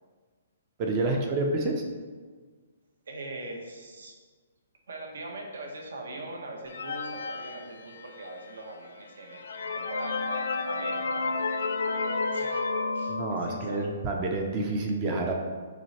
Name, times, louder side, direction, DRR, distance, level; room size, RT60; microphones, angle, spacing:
voice 1, 0.8-1.8 13.1-15.3, right 2 dB, 20° right, 2 dB, 0.4 m, -28 dB
voice 2, 3.1-4.1 4.9-11.4 11.8-12.7 12.9-14.1, right 2 dB, 75° right, 1 dB, 0.9 m, -42 dB
sound 1, 6.7-8.3 8.9-9.0 9.3-13.9, left 3 dB, 70° left, 0.4 m, -31 dB
6.0 x 3.1 x 2.9 m, 1.5 s
hypercardioid pair, 175°, 0 cm